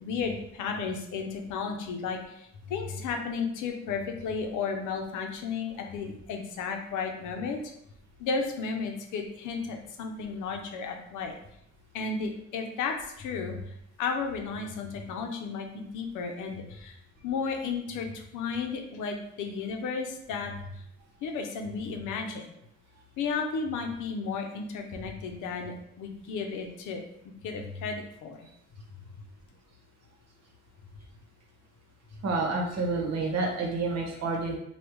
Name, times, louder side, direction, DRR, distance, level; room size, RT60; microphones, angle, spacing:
voice 1, 0.0-2.4 2.7-7.6 8.2-11.3 11.9-13.6 14.0-16.9 17.2-20.5 21.2-22.5 23.2-28.4, left 5 dB, 80° left, 3 dB, 0.6 m, -33 dB
voice 2, 32.2-34.6, right 3 dB, 60° right, 0 dB, 1.0 m, -29 dB
3.4 x 2.3 x 3.0 m, 0.74 s
cardioid pair, 90°, 30 cm